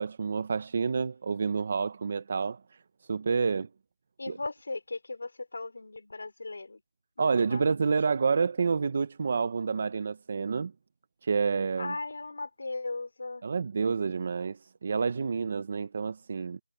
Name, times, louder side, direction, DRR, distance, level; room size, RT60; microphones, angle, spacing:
voice 1, 0.0-2.8 3.1-3.7 4.3-4.4 7.2-10.7 11.2-12.0 13.4-16.6, right 5 dB, 25° right, 0.7 m, -29 dB
voice 2, 4.2-6.8 7.2-7.7 11.8-13.5, left 3 dB, 50° left, 3.4 m, -37 dB
figure-of-eight pair, 180°, 0 cm